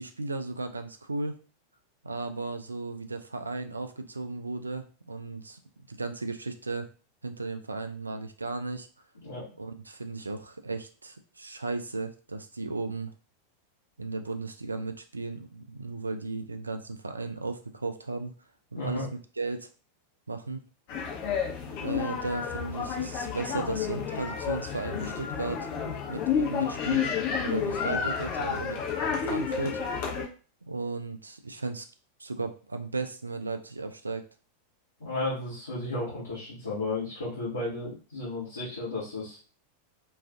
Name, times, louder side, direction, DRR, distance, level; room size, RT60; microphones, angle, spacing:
voice 1, 0.0-1.3 2.0-5.6 5.9-6.9 7.2-8.9 9.5-13.1 14.0-18.3 18.7-19.7 20.3-20.6 21.8-25.7 26.1-27.1 27.4-28.9 29.2-29.8 30.6-31.9 32.2-34.2, right 3 dB, 80° right, 8 dB, 0.3 m, -35 dB
voice 2, 18.7-19.1 35.0-39.4, left 2 dB, 75° left, -10 dB, 1.1 m, -33 dB
sound 1, 20.9-30.3, left 7 dB, 45° left, 0.7 m, -30 dB
2.4 x 2.4 x 2.3 m, 0.37 s
figure-of-eight pair, 90°, 0 cm